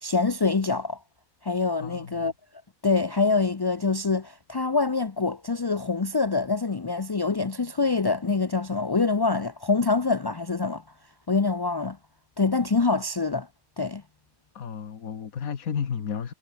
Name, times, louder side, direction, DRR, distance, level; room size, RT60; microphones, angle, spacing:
voice 1, 0.0-1.0 1.4-2.3 2.8-10.8 11.3-12.0 12.4-13.5 13.8-14.0, left 4 dB, 35° left, 0.4 m, -25 dB
voice 2, 1.8-2.3 14.5-16.3, left 7 dB, 75° left, 1.9 m, -32 dB
omnidirectional pair, 1.5 m